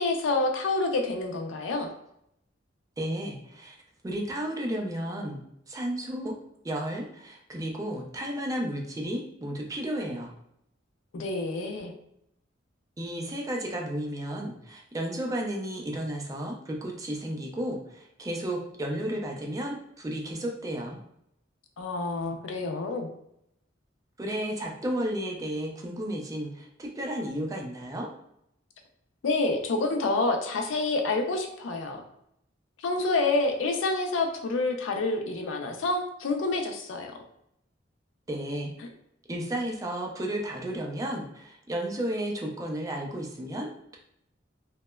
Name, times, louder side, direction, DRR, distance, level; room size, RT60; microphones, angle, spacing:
voice 1, 0.0-1.9 11.1-11.9 21.8-23.1 29.2-32.0 32.8-37.1, left 3 dB, 80° left, 4 dB, 0.4 m, -28 dB
voice 2, 3.0-3.8 4.0-6.4 6.6-10.3 13.0-21.0 24.2-28.1 38.3-38.7 39.3-44.0, right 1 dB, 20° right, 0 dB, 0.3 m, -33 dB
2.8 x 2.1 x 2.2 m, 0.77 s
head